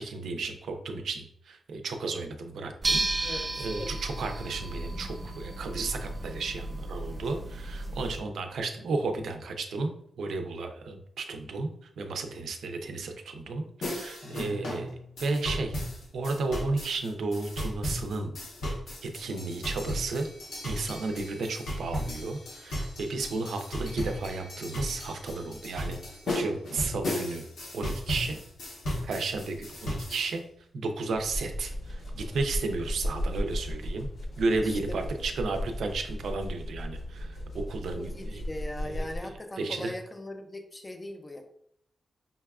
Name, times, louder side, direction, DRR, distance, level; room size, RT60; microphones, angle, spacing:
voice 1, 0.0-11.7 12.0-14.9 15.2-15.8 16.1-18.3 19.0-20.3 20.6-26.0 26.3-27.4 27.7-28.4 29.0-29.6 29.8-30.4 30.7-34.1 34.4-38.4 38.8-39.1 39.6-39.9, right 3 dB, 90° right, 5 dB, 0.5 m, -33 dB
sound 1, 2.8-8.2, right 2 dB, 25° right, 0.7 m, -33 dB
voice 2, 3.2-3.9 34.5-35.1 38.0-41.4, left 1 dB, 20° left, 5 dB, 0.5 m, -40 dB
sound 2, 13.8-30.3, left 1 dB, 90° left, 1.1 m, -35 dB
sound 3, 31.1-39.4, equal, 70° left, 0.7 m, -36 dB
5.3 x 2.3 x 2.3 m, 0.68 s
wide cardioid pair, 120°, 0 cm